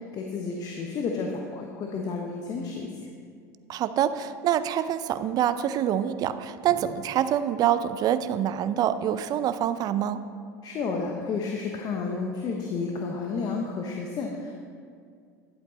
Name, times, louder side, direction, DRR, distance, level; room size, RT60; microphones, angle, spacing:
voice 1, 0.1-3.1 10.6-14.5, left 4 dB, 45° left, 1 dB, 1.0 m, -31 dB
voice 2, 3.7-10.2, right 10 dB, 45° right, 13 dB, 0.5 m, -26 dB
Drum, 6.7-8.8, left 1 dB, 75° left, 2.2 m, -48 dB
11.0 x 7.9 x 4.0 m, 2.2 s
hypercardioid pair, 80°, 9 cm